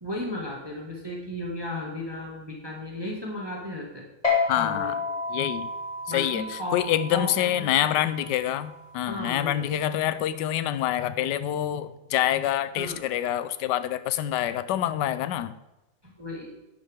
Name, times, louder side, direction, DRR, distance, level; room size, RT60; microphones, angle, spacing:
voice 1, 0.0-4.1 4.5-5.0 6.1-7.9 9.1-9.8 12.8-13.0 16.0-16.5, left 1 dB, 15° right, -1 dB, 1.7 m, -35 dB
sound 1, 4.2-11.0, left 4 dB, 20° left, 2.5 m, -32 dB
voice 2, 4.5-4.9 5.3-5.7 6.1-15.5, left 12 dB, 75° left, 14 dB, 1.2 m, -26 dB
11.5 x 9.9 x 3.5 m, 0.99 s
omnidirectional pair, 2.0 m